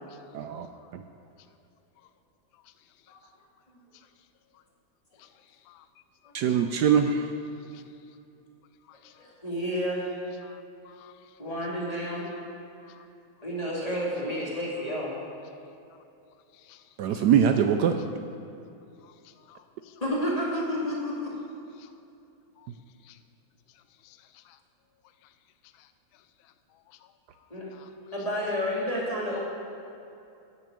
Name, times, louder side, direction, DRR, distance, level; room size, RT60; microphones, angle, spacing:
voice 1, 0.3-0.7 0.9-1.0 6.3-7.3 17.0-18.0, right 8 dB, 80° right, 7 dB, 0.9 m, -23 dB
voice 2, 9.2-10.0 11.4-12.2 13.4-15.1 20.0-21.3 27.5-27.7 28.1-29.4, equal, 15° left, -6 dB, 2.5 m, -30 dB
voice 3, 10.4-11.1 12.8-13.0 16.7-16.8 19.0-19.1 19.5-19.9 21.8-21.9 22.6-22.7 23.1-23.2 24.0-24.2 27.8-27.9, left 14 dB, 75° left, 10 dB, 1.3 m, -56 dB
11.5 x 7.1 x 8.3 m, 2.7 s
omnidirectional pair, 2.3 m